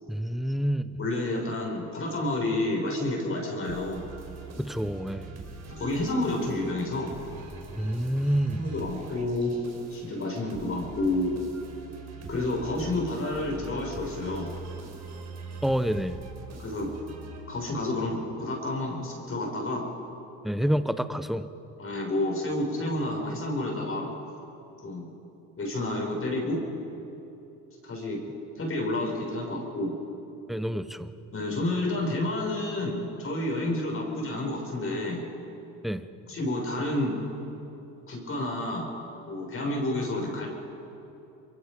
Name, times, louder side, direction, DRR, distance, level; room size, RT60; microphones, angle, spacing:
voice 1, 0.1-1.0 4.6-5.3 7.8-8.6 15.6-16.2 20.4-21.4 30.5-31.1 35.8-36.0, equal, ahead, 12 dB, 1.1 m, -28 dB
voice 2, 1.0-4.0 5.8-7.1 8.5-9.6 9.9-11.3 12.3-14.5 16.6-16.9 17.5-19.9 21.8-24.1 24.8-25.1 25.6-26.6 27.8-28.2 28.5-29.9 31.3-35.2 36.3-37.2 38.1-38.9 39.2-40.5, left 1 dB, 40° left, -1 dB, 6.4 m, -29 dB
sound 1, 3.6-17.9, right 3 dB, 50° right, 5.2 m, -43 dB
24.5 x 23.0 x 5.3 m, 2.9 s
supercardioid pair, 70°, 34 cm